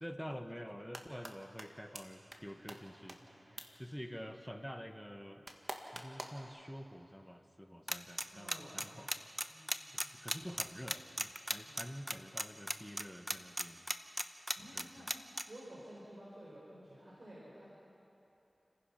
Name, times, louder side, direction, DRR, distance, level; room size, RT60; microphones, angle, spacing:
voice 1, 0.0-3.2 3.8-5.4 5.9-9.1 9.9-13.8 14.7-15.0, equal, 5° left, 6 dB, 1.4 m, -48 dB
sound 1, 0.7-1.3 1.6-1.7 2.0-2.1 2.3-2.4 2.7-2.8 3.1-3.2 3.6-3.7 5.5-6.4, right 1 dB, 40° right, 1.7 m, -44 dB
voice 2, 2.2-3.8 8.3-9.1 9.5-10.2 11.7-12.2 14.6-15.1 15.5-17.7, right 1 dB, 55° right, -7 dB, 4.7 m, -55 dB
sound 2, 7.9-15.4, right 1 dB, 15° right, 0.9 m, -35 dB
29.5 x 15.5 x 5.9 m, 2.9 s
wide cardioid pair, 50°, 0 cm